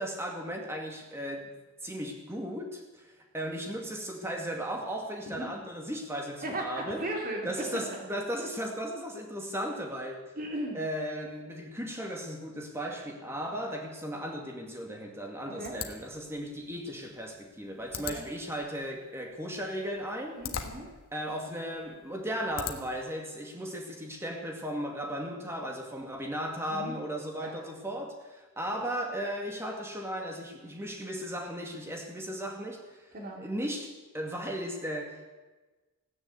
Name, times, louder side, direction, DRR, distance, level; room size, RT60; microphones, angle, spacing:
voice 1, 0.0-1.6 1.8-7.1 7.4-10.2 10.7-20.4 21.1-35.3, equal, 10° right, 2 dB, 2.1 m, -36 dB
voice 2, 6.4-8.0 10.4-10.8 15.4-15.7 18.0-18.2 20.3-20.9 26.7-27.0 27.4-27.6 33.1-33.4, right 1 dB, 40° right, 0 dB, 2.8 m, -37 dB
sound 1, 15.6-23.1, left 7 dB, 60° left, 1.4 m, -43 dB
16.5 x 10.0 x 8.2 m, 1.2 s
head